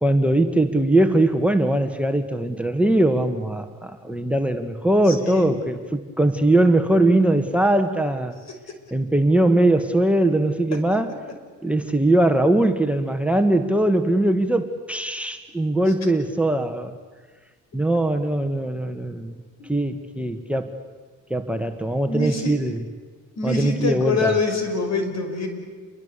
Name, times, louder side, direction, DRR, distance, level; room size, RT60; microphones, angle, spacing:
voice 1, 0.0-8.4 8.9-11.1 11.6-16.9 17.7-19.3 19.7-20.8 21.3-22.8 23.4-24.3, right 1 dB, 5° right, 9 dB, 1.6 m, -21 dB
voice 2, 5.0-5.5 8.5-8.6 22.1-22.6 23.4-25.5, left 3 dB, 60° left, 6 dB, 5.8 m, -25 dB
28.5 x 22.5 x 8.3 m, 1.4 s
cardioid pair, 90°, 30 cm